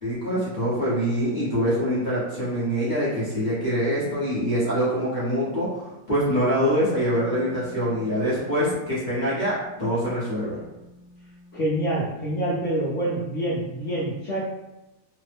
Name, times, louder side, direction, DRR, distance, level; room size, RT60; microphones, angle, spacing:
voice 1, 0.0-10.6, equal, 35° left, -11 dB, 0.8 m, -24 dB
Wind instrument woodwind instrument, 6.4-12.1, left 1 dB, 30° right, 0.7 m, -47 dB
voice 2, 11.5-14.4, right 1 dB, 60° left, -7 dB, 0.9 m, -26 dB
3.2 x 2.0 x 3.3 m, 0.99 s
omnidirectional pair, 1.7 m